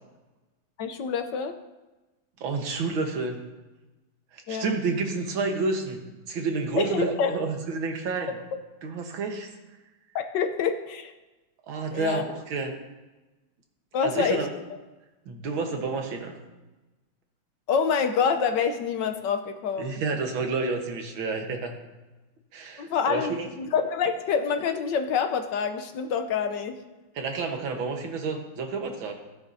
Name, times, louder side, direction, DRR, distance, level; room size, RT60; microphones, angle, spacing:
voice 1, 0.8-1.5 4.5-4.7 6.8-7.4 10.1-11.1 11.9-12.2 13.9-14.4 17.7-20.0 22.8-26.8, left 6 dB, 70° left, 7 dB, 1.4 m, -26 dB
voice 2, 2.4-3.4 4.3-8.3 8.8-9.5 11.7-12.7 14.0-14.5 15.3-16.4 19.8-21.8 22.5-23.5 27.2-29.1, right 4 dB, 85° right, 3 dB, 2.1 m, -30 dB
16.5 x 9.8 x 2.7 m, 1.1 s
omnidirectional pair, 2.1 m